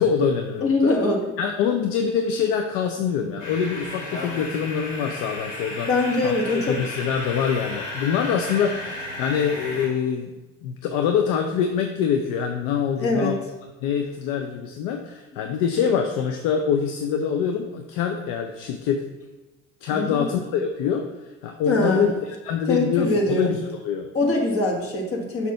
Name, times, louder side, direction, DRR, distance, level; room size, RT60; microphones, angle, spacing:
voice 1, 0.0-0.9 1.4-5.9 6.2-10.3 10.6-13.4 13.8-19.0 19.8-21.0 21.4-22.1 22.4-23.6 23.8-24.1, left 7 dB, 60° left, 5 dB, 0.6 m, -24 dB
voice 2, 0.6-1.2 5.9-6.7 13.0-13.4 19.9-20.3 21.6-22.1 22.7-23.5 24.1-25.5, left 2 dB, 35° left, 1 dB, 1.6 m, -23 dB
sound 1, 3.4-9.9, left 2 dB, 85° left, 1.6 m, -34 dB
6.0 x 2.8 x 5.5 m, 1.1 s
hypercardioid pair, 65°, 37 cm